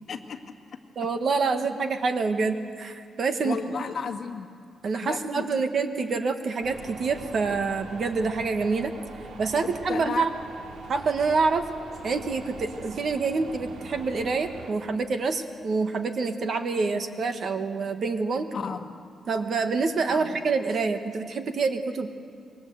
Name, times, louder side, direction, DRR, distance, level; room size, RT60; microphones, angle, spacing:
voice 1, 0.1-0.4 3.4-4.5 5.0-5.6 9.6-10.3 18.5-18.8 20.1-20.3, left 6 dB, 50° left, 5 dB, 1.7 m, -33 dB
voice 2, 1.0-3.6 4.8-8.9 9.4-10.3 10.9-11.7 12.0-18.5 19.3-22.1, right 4 dB, 45° right, 7 dB, 1.5 m, -27 dB
sound 1, 6.6-14.7, right 4 dB, 80° right, 2.4 m, -43 dB
26.5 x 22.5 x 8.0 m, 2.3 s
wide cardioid pair, 155°, 0 cm